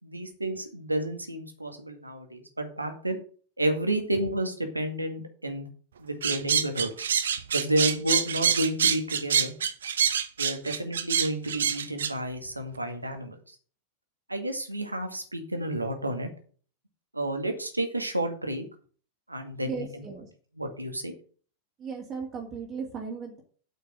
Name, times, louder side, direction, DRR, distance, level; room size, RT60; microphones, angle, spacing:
voice 1, 0.0-3.2 3.6-5.7 6.0-7.1 7.5-9.5 10.4-13.6 14.3-16.3 17.1-18.7 19.3-20.0 20.6-21.1, right 1 dB, 85° right, 5 dB, 2.0 m, -31 dB
sound 1, 6.2-12.1, right 8 dB, 65° right, 0.9 m, -26 dB
voice 2, 19.6-20.3 21.8-23.4, right 5 dB, 25° right, 0 dB, 2.4 m, -36 dB
8.1 x 5.9 x 7.8 m, 0.42 s
figure-of-eight pair, 90°, 0 cm